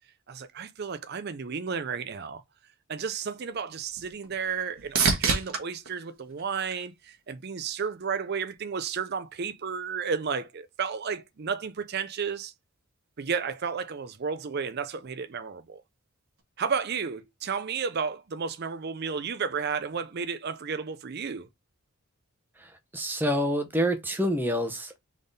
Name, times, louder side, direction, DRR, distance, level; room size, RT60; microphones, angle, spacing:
voice 1, 0.3-2.4 2.9-12.5 13.2-15.8 16.6-21.5, right 6 dB, 45° right, 0.5 m, -32 dB
sound 1, 3.2-7.4 7.9-8.6 16.4-16.5, right 4 dB, 70° right, 1.2 m, -31 dB
voice 2, 22.6-25.0, equal, 10° right, 0.7 m, -27 dB
3.6 x 3.6 x 3.9 m
head